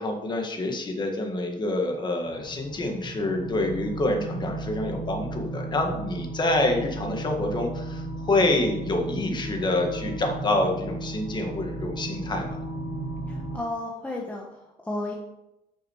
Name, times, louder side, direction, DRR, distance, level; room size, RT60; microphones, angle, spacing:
voice 1, 0.0-12.6, left 2 dB, 30° left, 2 dB, 1.7 m, -27 dB
sound 1, 2.3-13.6, right 2 dB, 10° right, 2.1 m, -35 dB
voice 2, 13.3-15.1, left 2 dB, 10° left, -1 dB, 1.1 m, -33 dB
8.7 x 6.4 x 4.7 m, 0.89 s
cardioid pair, 135°, 16 cm